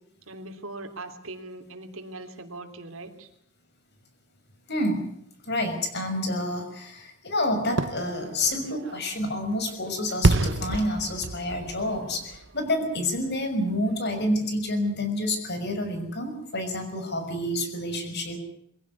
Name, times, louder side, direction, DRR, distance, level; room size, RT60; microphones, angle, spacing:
voice 1, 0.3-3.3, right 2 dB, 90° right, 7 dB, 3.2 m, -40 dB
voice 2, 4.7-5.0 5.5-18.4, left 1 dB, 55° left, 7 dB, 6.0 m, -28 dB
Fireworks, 7.7-13.5 13.9-14.0, right 2 dB, 60° right, 0.9 m, -29 dB
23.0 x 16.5 x 9.6 m, 0.72 s
head